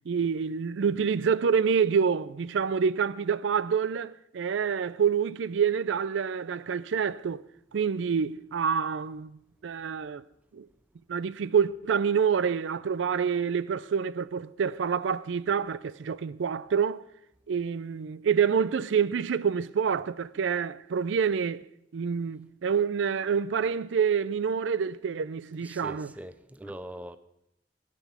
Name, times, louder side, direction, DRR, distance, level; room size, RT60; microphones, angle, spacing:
voice 1, 0.1-7.4 7.7-10.2 10.5-10.7 11.1-17.0 17.5-21.6 21.9-26.1, right 6 dB, 70° right, 0.4 m, -27 dB
voice 2, 25.6-27.2, right 1 dB, 10° right, 0.5 m, -41 dB
10.5 x 9.3 x 7.2 m
head